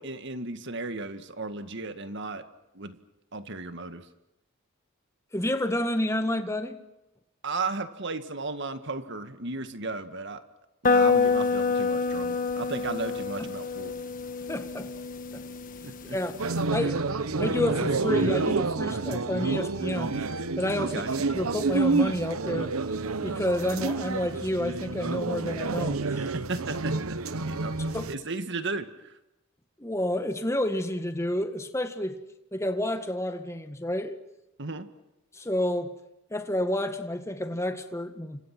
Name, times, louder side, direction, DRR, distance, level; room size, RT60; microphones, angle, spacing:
voice 1, 0.0-2.5 2.7-3.0 3.3-4.1 7.4-10.4 10.8-13.9 15.8-16.2 20.8-21.1 26.2-27.2 27.5-27.8 28.1-29.2 34.6-34.9, right 3 dB, 55° right, 1.9 m, -35 dB
voice 2, 5.3-6.8 14.5-14.9 15.3-15.4 16.1-16.3 16.7-17.0 17.4-20.2 20.6-21.0 21.3-22.7 23.2-26.3 27.9-28.1 29.8-32.2 32.5-34.2 35.3-35.9 36.3-38.4, left 1 dB, 15° left, 1.8 m, -29 dB
sound 1, 10.8-16.6, left 4 dB, 40° left, 1.4 m, -27 dB
sound 2, 16.4-28.1, right 3 dB, 85° right, 1.1 m, -29 dB
29.5 x 26.5 x 6.1 m
head